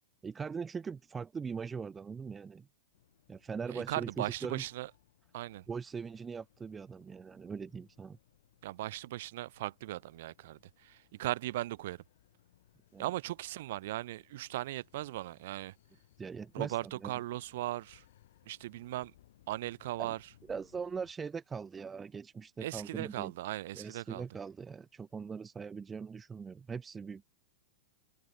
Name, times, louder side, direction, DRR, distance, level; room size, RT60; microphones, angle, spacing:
voice 1, 0.2-2.7 3.3-4.6 5.7-8.2 12.9-13.1 16.2-17.1 20.0-20.1 20.5-23.3 23.7-27.2, right 5 dB, 15° right, 0.5 m, -41 dB
sound 1, 2.9-21.1, left 13 dB, 65° left, 6.3 m, -67 dB
voice 2, 3.7-4.9 5.3-5.6 8.6-12.0 13.0-15.7 16.5-18.0 18.5-19.1 19.5-20.2 22.6-24.3, right 16 dB, 65° right, 0.7 m, -38 dB
open air
hypercardioid pair, 110°, 0 cm